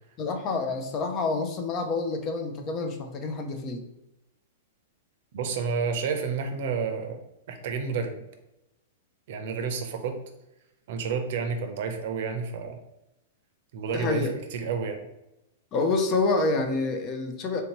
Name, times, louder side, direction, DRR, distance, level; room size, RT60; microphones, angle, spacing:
voice 1, 0.2-3.9 13.9-14.3 15.7-17.6, left 3 dB, 35° left, 5 dB, 0.5 m, -27 dB
voice 2, 5.3-7.2 7.5-8.2 9.3-10.2 10.9-12.8 13.7-15.0, right 5 dB, 60° right, 6 dB, 0.6 m, -30 dB
3.3 x 2.7 x 2.9 m, 0.92 s
hypercardioid pair, 125°, 0 cm